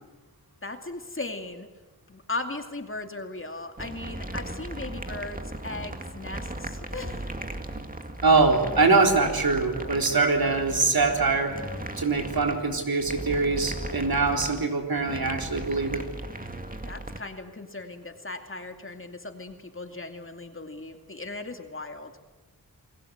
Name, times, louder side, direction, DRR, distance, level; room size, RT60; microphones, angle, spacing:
voice 1, 0.6-1.7 2.1-7.3 16.9-22.1, left 2 dB, 35° left, 5 dB, 2.6 m, -37 dB
sound 1, 3.8-17.2, right 1 dB, 25° right, 2.2 m, -37 dB
voice 2, 8.2-11.5 12.0-16.0, right 3 dB, 75° right, 3 dB, 3.9 m, -23 dB
29.5 x 21.0 x 8.1 m, 1.3 s
wide cardioid pair, 80°, 36 cm